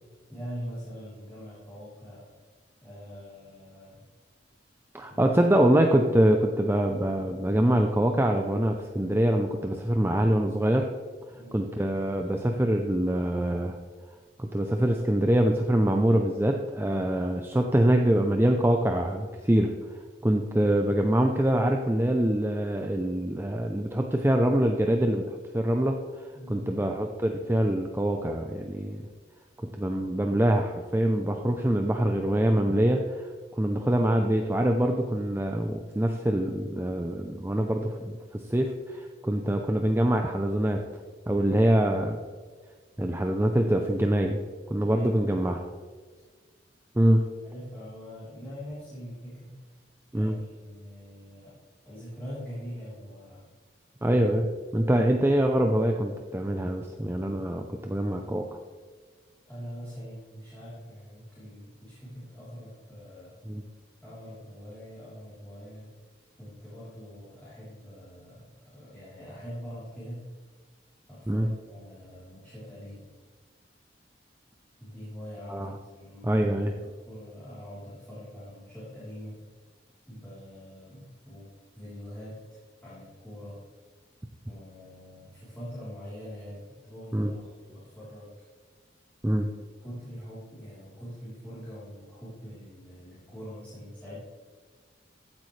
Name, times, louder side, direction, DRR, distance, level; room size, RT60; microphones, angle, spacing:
voice 1, 0.3-2.3 2.8-4.0 5.1-5.4 11.3-11.6 26.3-26.7 44.8-45.4 47.4-49.8 50.1-51.5 51.8-53.4 59.4-63.4 64.0-65.9 66.4-70.2 71.1-73.1 74.8-79.4 80.1-83.6 84.5-88.3 89.2-89.4 89.8-94.2, equal, 10° left, -12 dB, 3.5 m, -43 dB
voice 2, 4.9-10.9 11.5-13.8 14.4-29.0 29.6-33.3 33.6-40.8 41.3-42.2 43.0-44.4 44.7-45.6 47.0-47.2 50.1-50.3 54.0-54.5 54.7-58.6 63.5-63.6 71.3-71.5 75.5-75.8 76.2-76.7 87.1-87.3 89.2-89.5, right 1 dB, 10° right, 3 dB, 0.5 m, -24 dB
15.0 x 8.3 x 3.3 m, 1.5 s
head